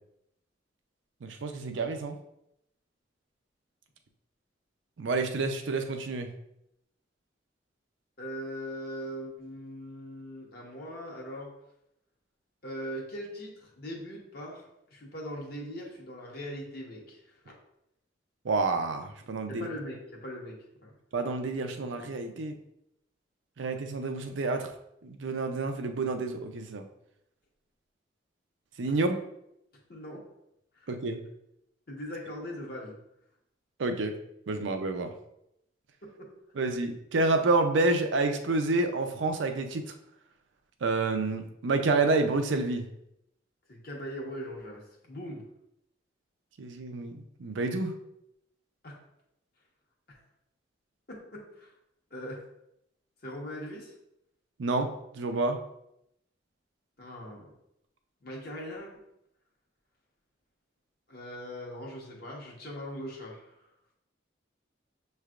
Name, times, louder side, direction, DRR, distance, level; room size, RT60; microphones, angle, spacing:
voice 1, 1.2-2.2 5.0-6.3 18.4-19.7 21.1-22.5 23.6-24.7 25.0-26.8 28.8-29.2 30.9-31.2 33.8-34.1 34.5-35.1 36.6-39.9 40.8-42.8 46.6-48.0 54.6-54.9 55.1-55.6, right 3 dB, 85° right, 6 dB, 0.5 m, -29 dB
voice 2, 8.2-11.5 12.6-14.7 14.9-17.5 19.5-20.9 29.9-30.2 30.8-30.9 31.9-33.0 36.0-36.3 43.7-45.4 48.8-49.0 50.1-50.2 51.1-51.7 52.1-52.4 53.2-53.9 57.0-57.5 58.2-58.9 61.1-63.5, equal, 55° left, -1 dB, 1.1 m, -40 dB
6.6 x 3.2 x 2.4 m, 0.79 s
head